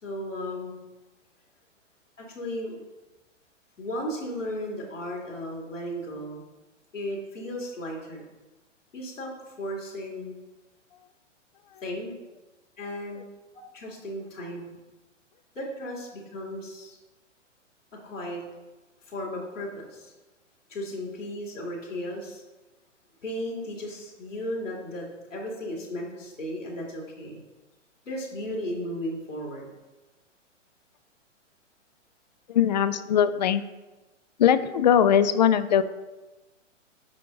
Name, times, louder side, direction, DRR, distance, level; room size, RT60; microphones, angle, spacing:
voice 1, 0.0-0.8 2.2-2.8 3.8-6.4 6.9-8.2 8.9-9.3 9.6-10.3 11.8-12.1 12.8-13.3 13.7-14.6 15.5-17.0 18.0-18.4 19.1-20.1 20.7-22.4 23.2-27.4 28.0-29.7, equal, 75° left, -3 dB, 2.8 m, -35 dB
voice 2, 32.5-33.6 34.4-35.8, left 9 dB, 35° left, 14 dB, 0.4 m, -21 dB
8.7 x 5.7 x 3.7 m, 1.1 s
figure-of-eight pair, 120°, 37 cm